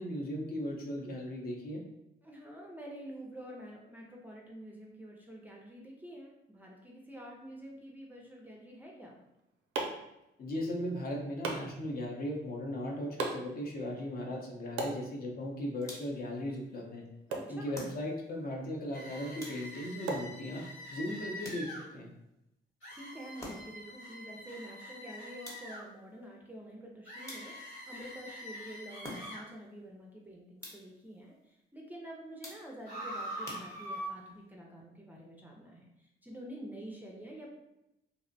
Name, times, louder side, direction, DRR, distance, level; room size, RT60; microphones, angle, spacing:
voice 1, 0.0-1.8 10.4-17.0 17.5-20.6 20.9-22.1, left 1 dB, 50° left, 0 dB, 0.6 m, -37 dB
voice 2, 2.2-9.2 17.3-17.7 22.9-37.5, right 1 dB, 10° right, -2 dB, 0.4 m, -48 dB
sound 1, 9.1-21.0, right 3 dB, 90° right, 0.5 m, -44 dB
sound 2, 15.8-16.3 17.7-18.4 19.4-20.0 21.4-22.0 23.4-23.9 25.4-26.0 27.3-27.8 29.0-29.6 30.6-31.1 32.4-32.9 33.4-34.2, left 1 dB, 15° left, 0.8 m, -48 dB
sound 3, 18.9-21.9 22.8-25.8 27.0-29.4 32.8-34.1, equal, 90° left, 1.4 m, -44 dB
2.5 x 2.0 x 2.6 m, 0.88 s
cardioid pair, 90°, 20 cm